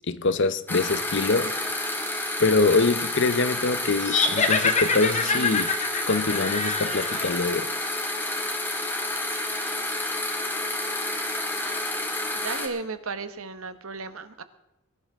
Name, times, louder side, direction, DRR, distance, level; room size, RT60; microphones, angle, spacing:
voice 1, 0.1-1.5 2.4-5.7 6.1-7.7, left 3 dB, 55° left, 0.8 m, -24 dB
sound 1, 0.7-12.7, left 1 dB, 10° left, 2.1 m, -30 dB
sound 2, 4.0-7.4, left 5 dB, 35° left, 1.5 m, -26 dB
voice 2, 5.2-5.7 12.3-14.4, right 4 dB, 75° right, 1.2 m, -35 dB
22.5 x 11.5 x 3.6 m
head